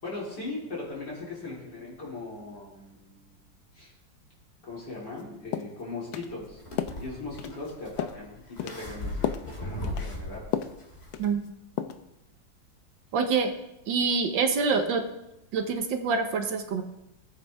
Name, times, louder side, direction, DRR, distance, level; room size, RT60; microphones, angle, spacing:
voice 1, 0.0-3.4 3.7-3.9 4.7-10.4, left 3 dB, 55° left, -5 dB, 4.2 m, -39 dB
sound 1, 5.1-5.2 5.5-5.8 6.1-6.3 6.8-7.0 7.4-7.7 8.0-8.2 8.6-8.8 9.2-9.5 9.8-10.1 10.5-10.8 11.1-11.5 11.8-12.0, left 10 dB, 80° left, 1.4 m, -32 dB
sound 2, 6.2-11.3, left 1 dB, 30° left, 2.6 m, -38 dB
voice 2, 13.1-13.5 13.9-15.0 15.5-16.8, right 5 dB, 75° right, 6 dB, 1.7 m, -26 dB
17.5 x 8.4 x 3.5 m, 0.91 s
omnidirectional pair, 2.1 m